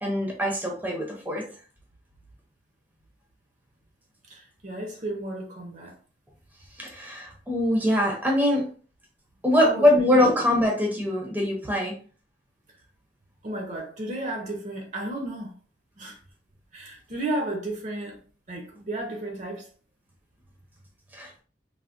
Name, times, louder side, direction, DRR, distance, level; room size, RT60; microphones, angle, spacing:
voice 1, 0.0-1.5 6.8-8.7 9.4-12.0 21.1-21.4, left 1 dB, 10° right, 0.6 m, -23 dB
voice 2, 4.3-5.9 9.6-9.9 13.4-15.5 16.0-16.2 16.7-18.2 18.5-19.6, right 1 dB, 45° right, 0.7 m, -33 dB
3.3 x 2.1 x 2.5 m
head